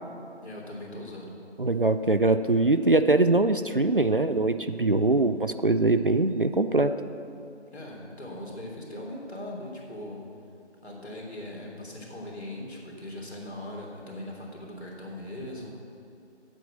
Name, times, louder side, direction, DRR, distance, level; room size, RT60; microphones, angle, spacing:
voice 1, 0.4-1.3 7.7-10.2 10.8-15.7, left 1 dB, 65° left, -2 dB, 3.2 m, -40 dB
voice 2, 1.6-6.9, right 2 dB, 50° right, 10 dB, 0.4 m, -22 dB
9.1 x 8.4 x 8.1 m, 2.6 s
figure-of-eight pair, 165°, 35 cm